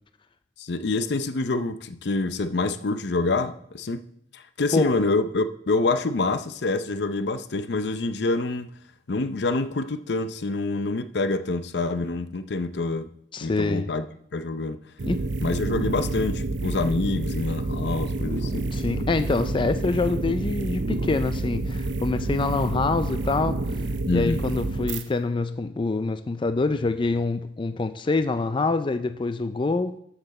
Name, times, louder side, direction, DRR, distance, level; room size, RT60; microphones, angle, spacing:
voice 1, 0.6-4.0 4.3-8.7 9.1-13.1 13.4-14.1 14.3-14.8 15.4-18.6 24.1-24.4, left 3 dB, 70° left, 11 dB, 0.6 m, -26 dB
voice 2, 13.3-13.9 15.1-15.3 18.7-23.6 24.1-30.0, left 3 dB, 30° left, 10 dB, 0.4 m, -25 dB
sound 1, 15.0-25.0, right 2 dB, 90° right, 0.7 m, -28 dB
13.5 x 5.9 x 4.2 m, 0.71 s
head